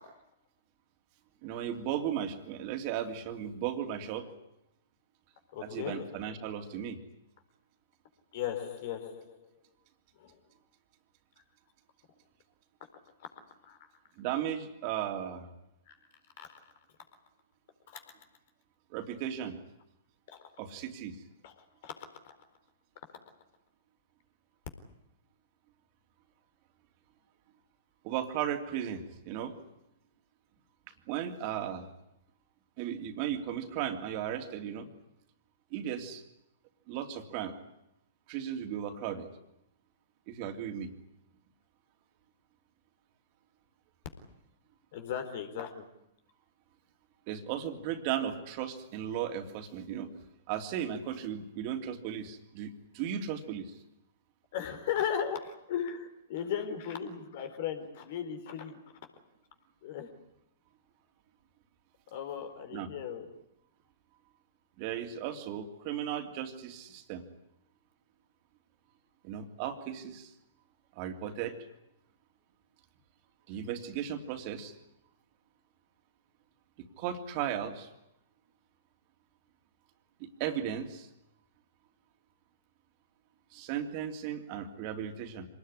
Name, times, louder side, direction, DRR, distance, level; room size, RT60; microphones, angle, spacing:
voice 1, 1.4-4.3 5.6-7.0 14.2-15.5 18.9-19.6 20.6-21.2 28.0-29.5 31.1-31.9 32.8-34.9 35.7-36.2 36.9-37.5 38.3-39.3 40.3-40.9 47.3-50.1 50.5-53.7 62.7-62.9 64.8-67.2 69.2-70.3 70.9-71.6 73.5-74.7 76.8-77.9 80.2-81.1 83.5-85.5, right 9 dB, 45° right, 5 dB, 3.1 m, -36 dB
voice 2, 5.5-6.4 8.3-9.5 10.2-10.4 13.2-13.3 13.6-13.8 15.9-16.0 16.4-16.5 17.9-18.0 20.3-20.5 21.4-21.5 21.8-22.0 44.9-45.8 54.5-58.8 59.8-60.1 62.1-63.3, left 8 dB, 55° left, 7 dB, 4.3 m, -37 dB
25.5 x 19.5 x 9.9 m, 0.85 s
hypercardioid pair, 115°, 0 cm